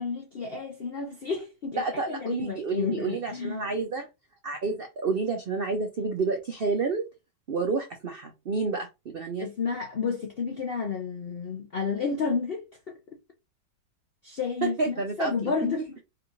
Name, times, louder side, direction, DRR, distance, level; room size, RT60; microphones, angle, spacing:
voice 1, 0.0-3.6 9.4-13.0 14.2-16.0, left 5 dB, 70° left, 0.5 m, -31 dB
voice 2, 1.8-4.1 4.4-7.1 7.5-9.5 14.6-15.5, right 4 dB, 90° right, 0.5 m, -29 dB
4.8 x 2.5 x 3.0 m
omnidirectional pair, 1.9 m